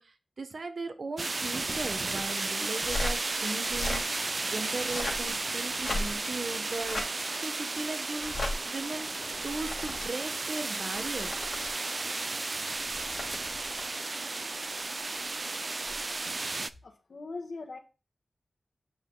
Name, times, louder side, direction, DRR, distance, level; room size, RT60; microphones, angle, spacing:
voice 1, 0.0-7.2 7.4-9.1 9.4-11.4, right 3 dB, 65° right, 8 dB, 1.0 m, -38 dB
sound 1, 1.2-16.7, right 3 dB, 45° right, 0.4 m, -34 dB
sound 2, 1.5-2.3 2.8-3.2 3.6-4.0 4.7-5.3 5.7-6.3 6.7-7.1 8.2-8.5 9.3-10.1 10.9-11.7 12.7-13.9 15.8-16.0, left 2 dB, 55° left, 2.6 m, -36 dB
voice 2, 16.5-17.8, left 3 dB, 70° left, 4 dB, 1.4 m, -41 dB
9.0 x 5.8 x 2.3 m, 0.31 s
wide cardioid pair, 110°, 0 cm